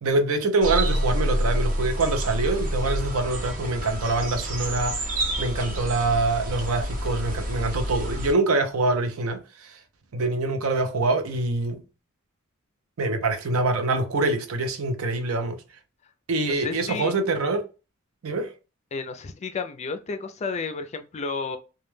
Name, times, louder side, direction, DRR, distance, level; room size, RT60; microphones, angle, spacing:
voice 1, 0.0-5.1 5.4-9.8 10.1-11.8 13.0-15.6 16.3-17.7 18.2-18.5, right 2 dB, 85° right, 0.5 m, -25 dB
sound 1, 0.6-8.3, equal, 40° right, 0.6 m, -28 dB
voice 2, 16.6-17.1 18.9-21.6, left 4 dB, 30° left, 0.3 m, -32 dB
2.2 x 2.1 x 3.1 m
head